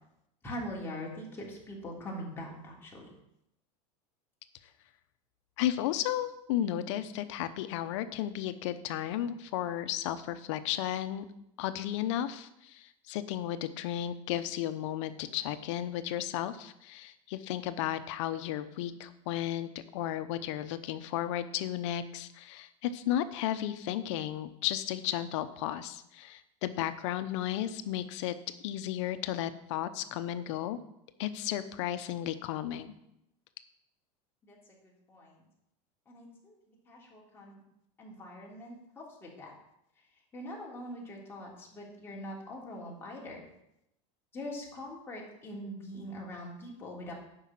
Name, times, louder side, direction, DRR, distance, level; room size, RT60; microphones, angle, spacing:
voice 1, 0.4-3.1 34.4-34.6 35.1-35.4 36.1-36.5 36.9-37.6 38.0-39.5 40.3-43.4 44.3-47.1, left 1 dB, 15° left, -4 dB, 3.2 m, -42 dB
voice 2, 5.6-11.2 11.6-28.4 28.6-30.8 31.2-32.9, left 12 dB, 75° left, 12 dB, 0.9 m, -34 dB
9.8 x 5.6 x 7.6 m, 0.81 s
supercardioid pair, 150°, 15 cm